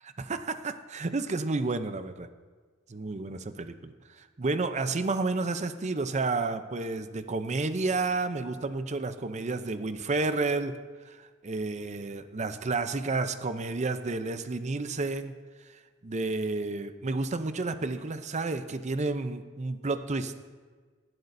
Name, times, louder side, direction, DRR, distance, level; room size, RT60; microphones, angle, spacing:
voice 1, 0.2-2.3 2.9-10.8 11.0-15.4 16.0-20.4, right 3 dB, 35° right, 10 dB, 0.6 m, -31 dB
18.5 x 12.0 x 2.6 m, 1.5 s
head